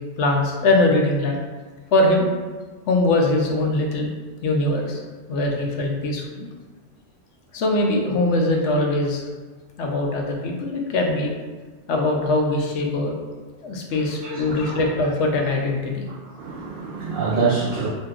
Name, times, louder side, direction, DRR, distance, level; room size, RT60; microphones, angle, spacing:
voice 1, 0.2-1.4 1.9-2.3 2.9-4.1 4.4-5.0 5.3-6.5 7.5-9.3 9.8-11.3 11.9-13.2 13.6-16.0, left 2 dB, 75° left, 1 dB, 0.9 m, -21 dB
voice 2, 13.9-14.8 16.4-17.9, right 4 dB, 60° right, -5 dB, 0.6 m, -26 dB
2.8 x 2.3 x 3.5 m, 1.4 s
omnidirectional pair, 1.2 m